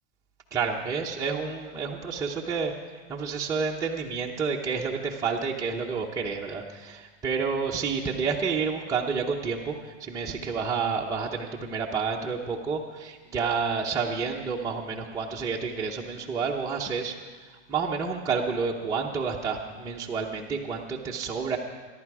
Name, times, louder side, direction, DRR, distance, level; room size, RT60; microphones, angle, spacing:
voice 1, 0.5-2.7 3.1-17.2 17.4-21.6, right 5 dB, 10° right, -3 dB, 0.9 m, -29 dB
24.0 x 11.0 x 4.8 m, 1.4 s
supercardioid pair, 155°, 34 cm